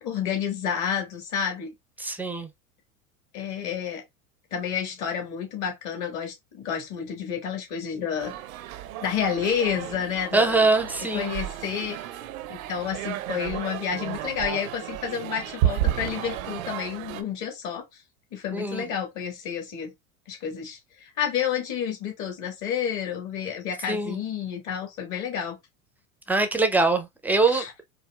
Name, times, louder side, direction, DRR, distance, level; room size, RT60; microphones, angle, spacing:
voice 1, 0.0-1.7 3.3-4.0 4.5-8.3 9.0-10.7 11.1-12.1 12.5-17.8 18.3-19.9 20.3-25.6 27.5-27.7, left 8 dB, 45° left, 1.4 m, -30 dB
voice 2, 2.0-2.5 10.3-11.4 18.5-18.8 23.9-24.2 26.3-27.8, right 3 dB, 5° right, 0.4 m, -23 dB
sound 1, 8.2-17.2, right 11 dB, 80° right, 0.5 m, -32 dB
4.8 x 2.0 x 2.2 m
hypercardioid pair, 95°, 41 cm